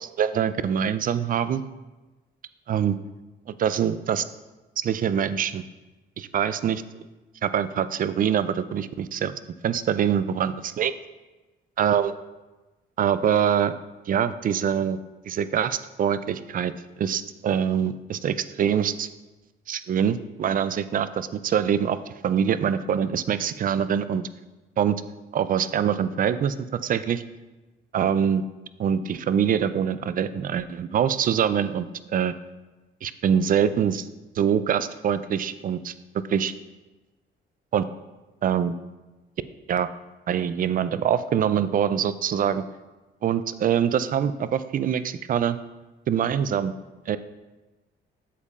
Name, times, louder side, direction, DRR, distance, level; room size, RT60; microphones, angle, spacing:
voice 1, 0.0-1.6 2.7-3.0 3.5-4.2 4.8-5.6 6.2-6.8 7.4-9.3 9.6-10.9 11.8-12.1 13.0-13.7 14.1-15.0 15.2-16.7 17.0-19.1 19.7-22.0 22.2-24.2 24.8-25.0 25.3-26.5 26.8-27.2 27.9-28.4 28.8-32.3 33.0-34.1 34.4-35.9 36.3-36.5 37.7-37.8 38.4-38.7 39.7-39.9 40.3-42.6 43.2-45.6 46.1-46.7 47.1-47.2, right 8 dB, 45° right, 14 dB, 0.4 m, -24 dB
8.3 x 7.2 x 2.5 m, 1.1 s
cardioid pair, 90°, 20 cm